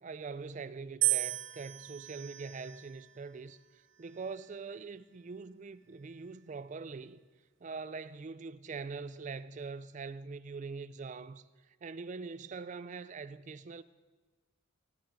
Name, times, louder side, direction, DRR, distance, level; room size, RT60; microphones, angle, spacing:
voice 1, 0.0-7.2 7.6-13.8, right 4 dB, 40° right, 0.4 m, -43 dB
sound 1, 1.0-3.2 4.0-4.6, right 19 dB, 70° right, 0.8 m, -35 dB
15.5 x 13.5 x 5.0 m
head